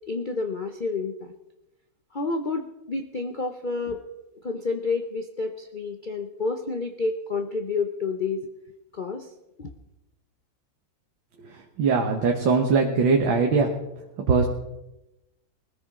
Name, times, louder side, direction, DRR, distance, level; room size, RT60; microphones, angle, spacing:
voice 1, 0.1-1.3 2.1-4.0 4.4-8.4 8.9-9.3 9.6-9.7, left 3 dB, 80° left, 5 dB, 0.4 m, -29 dB
voice 2, 11.8-13.7 14.3-14.5, right 4 dB, 85° right, 2 dB, 2.0 m, -21 dB
20.5 x 14.5 x 3.7 m, 0.94 s
omnidirectional pair, 2.0 m